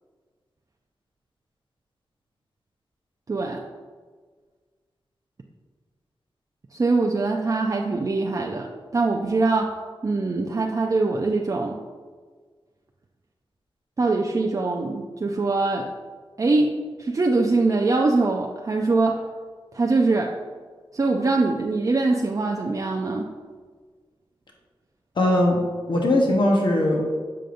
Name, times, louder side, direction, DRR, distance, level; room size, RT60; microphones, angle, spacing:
voice 1, 3.3-3.6 6.7-8.7 8.9-9.7 10.0-11.8 14.0-15.9 16.4-16.7 17.0-19.2 19.7-20.3 20.9-23.3, right 3 dB, 35° right, 0 dB, 0.5 m, -22 dB
voice 2, 25.2-25.6 25.9-27.0, left 1 dB, 60° left, 0 dB, 1.0 m, -20 dB
7.6 x 5.1 x 2.6 m, 1.5 s
cardioid pair, 70°, 9 cm